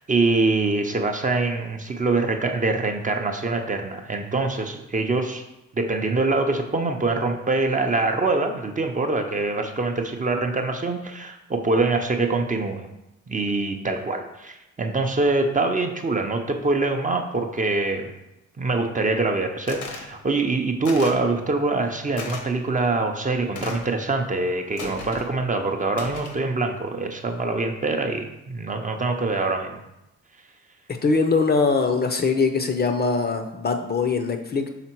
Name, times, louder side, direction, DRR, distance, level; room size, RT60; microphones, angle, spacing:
voice 1, 0.0-5.4 5.8-12.9 13.3-18.1 18.6-29.8, right 3 dB, 25° right, 4 dB, 0.7 m, -24 dB
sound 1, 19.7-20.1 20.8-21.3 22.2-22.4 23.5-23.9 24.8-25.3 25.9-26.4, left 3 dB, 75° left, 1.2 m, -35 dB
voice 2, 30.9-34.7, left 4 dB, 30° left, 6 dB, 0.6 m, -22 dB
5.8 x 3.6 x 4.5 m, 0.91 s
cardioid pair, 90°, 30 cm